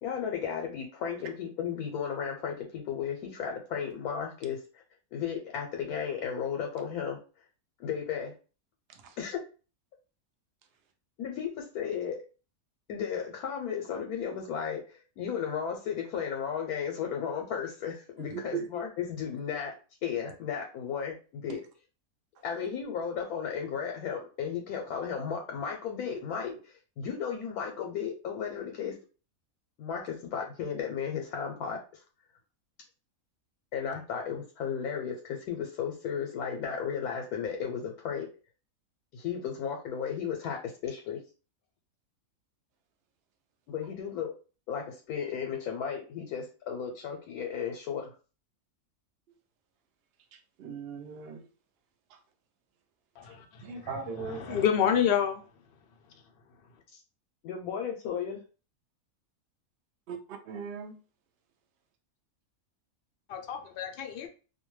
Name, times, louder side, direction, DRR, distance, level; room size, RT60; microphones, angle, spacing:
voice 1, 0.0-4.8 5.1-7.2 7.8-8.3 9.2-9.4 11.2-12.2 12.9-19.7 20.0-21.6 22.4-29.0 29.8-32.0 33.7-38.3 39.1-41.2 43.7-44.3 44.7-48.1 56.9-57.0 57.4-58.4, left 7 dB, 85° left, 1.1 m, -34 dB
voice 2, 18.3-18.7 21.5-21.6 50.3-51.5 52.1-52.2 53.6-54.8 60.1-60.2 60.5-61.0, right 6 dB, 65° right, 0.6 m, -39 dB
voice 3, 54.2-55.4 63.3-64.3, left 8 dB, 70° left, 0.5 m, -28 dB
2.6 x 2.2 x 3.0 m
omnidirectional pair, 1.5 m